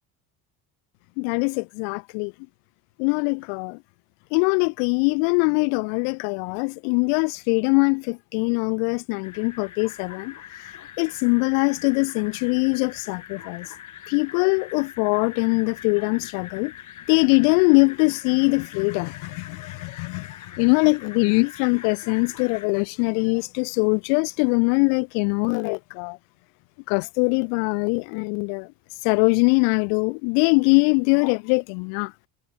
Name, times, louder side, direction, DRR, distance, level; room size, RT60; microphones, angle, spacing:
voice 1, 1.2-2.3 3.0-3.8 4.3-10.7 11.0-13.7 14.1-16.7 17.1-20.3 20.6-26.2 26.9-28.7 29.0-32.1, left 40 dB or more, 75° left, 0.7 m, -22 dB
sound 1, 9.2-22.7, left 10 dB, 40° left, 2.0 m, -43 dB
supercardioid pair, 80°, 44 cm